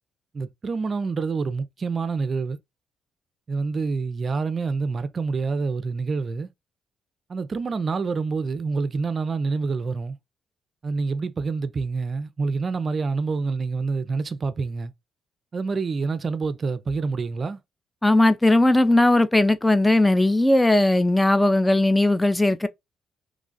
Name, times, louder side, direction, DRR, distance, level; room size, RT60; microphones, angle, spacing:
voice 1, 0.3-2.6 3.5-6.5 7.3-10.2 10.8-14.9 15.5-17.6, right 4 dB, 40° right, 0.4 m, -27 dB
voice 2, 18.0-22.7, left 1 dB, 10° left, 0.5 m, -18 dB
3.1 x 2.3 x 3.7 m
cardioid pair, 90°, 0 cm